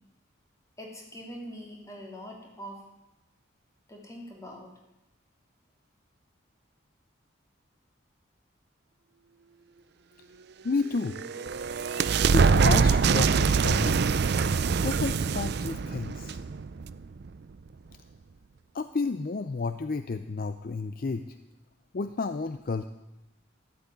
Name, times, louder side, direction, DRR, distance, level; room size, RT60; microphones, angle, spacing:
voice 1, 0.8-2.8 3.9-4.7, equal, 15° left, -1 dB, 2.7 m, -43 dB
voice 2, 10.6-11.2 12.3-14.0 14.8-16.4 18.7-21.4 21.9-22.9, left 4 dB, 45° left, 10 dB, 0.5 m, -31 dB
sound 1, 10.9-17.3, right 5 dB, 55° right, 0.4 m, -24 dB
12.5 x 7.7 x 9.6 m, 0.95 s
head